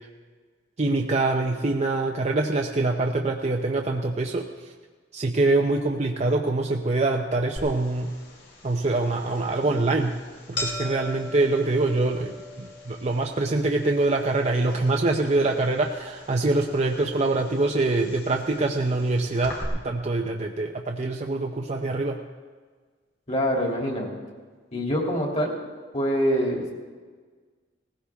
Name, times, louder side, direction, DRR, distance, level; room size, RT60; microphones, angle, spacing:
voice 1, 0.8-4.7 5.1-8.1 8.6-10.1 10.5-19.6 19.8-22.2, right 2 dB, 40° right, 2 dB, 0.7 m, -24 dB
sound 1, 7.6-19.6, left 2 dB, 75° left, 3.3 m, -41 dB
voice 2, 23.3-24.1 24.7-25.6 25.9-26.7, equal, 35° left, 0 dB, 2.8 m, -25 dB
18.5 x 15.5 x 3.5 m, 1.5 s
head